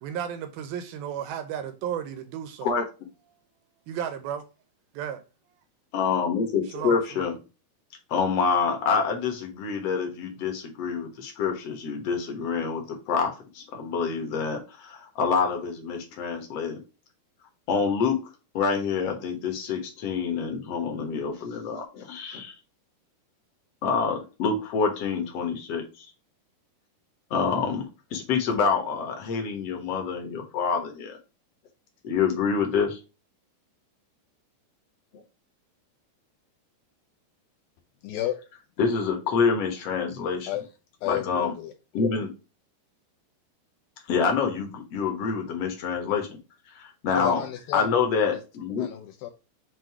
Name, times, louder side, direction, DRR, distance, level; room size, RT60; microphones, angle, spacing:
voice 1, 0.0-2.7 3.9-4.4 4.9-5.2 6.7-7.3, right 9 dB, 75° right, 2.3 m, -33 dB
voice 2, 5.9-7.3 8.1-16.8 17.7-18.2 18.5-22.5 23.8-26.1 27.3-27.8 28.1-31.2 32.0-33.0 38.8-40.5 41.0-41.5 41.9-42.3 44.1-46.3 46.7-47.4 47.7-48.9, left 5 dB, 65° left, 1.5 m, -27 dB
voice 3, 38.0-38.3 40.5-40.6 41.0-41.7 47.1-48.0 48.8-49.3, left 13 dB, 80° left, 2.0 m, -32 dB
7.6 x 2.7 x 4.6 m
omnidirectional pair, 4.7 m